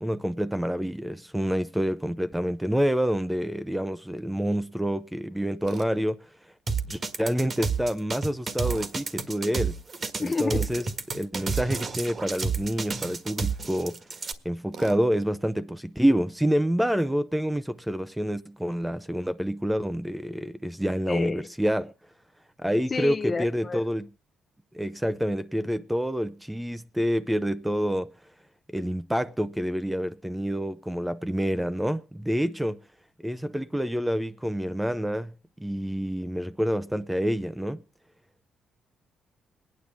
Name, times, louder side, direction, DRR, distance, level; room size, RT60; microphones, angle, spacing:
voice 1, 0.0-6.3 6.9-9.8 10.2-10.9 11.1-14.0 14.4-21.9 22.6-24.1 24.7-28.1 28.7-32.8 33.2-35.3 35.6-37.8, equal, 5° right, 0.6 m, -27 dB
Tools, 5.6-5.9 8.6-9.0 11.7-12.0 14.7-15.0, right 6 dB, 60° right, 1.9 m, -41 dB
sound 1, 6.7-14.3, right 5 dB, 40° right, 1.5 m, -30 dB
voice 2, 10.2-10.9 21.1-21.5 22.9-23.9, left 4 dB, 35° left, 0.8 m, -30 dB
22.5 x 9.6 x 3.4 m
cardioid pair, 90°, 0 cm